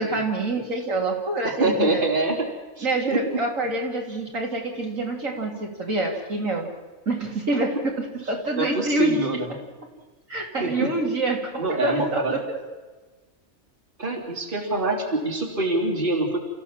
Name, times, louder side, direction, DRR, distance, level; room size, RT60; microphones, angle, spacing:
voice 1, 0.0-2.0 2.8-6.7 7.1-9.4 10.3-12.4, right 2 dB, 70° right, 0 dB, 3.6 m, -26 dB
voice 2, 1.4-2.5 2.8-3.4 8.6-9.5 10.6-10.9 11.6-12.4 14.0-16.4, right 2 dB, 40° right, 0 dB, 3.5 m, -25 dB
29.5 x 15.5 x 7.5 m, 1.3 s
omnidirectional pair, 1.4 m